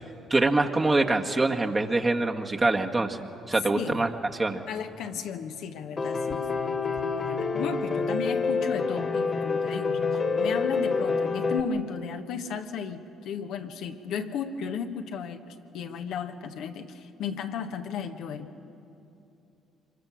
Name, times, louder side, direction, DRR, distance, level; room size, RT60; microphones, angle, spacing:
voice 1, 0.3-4.1 4.4-4.6, right 2 dB, 25° right, 3 dB, 1.7 m, -24 dB
voice 2, 3.7-4.1 4.7-6.4 7.1-18.5, left 6 dB, 70° left, 5 dB, 1.3 m, -34 dB
Piano, 6.0-11.6, left 4 dB, 40° left, 2.0 m, -27 dB
25.5 x 22.5 x 6.3 m, 2.7 s
hypercardioid pair, 55°, 0 cm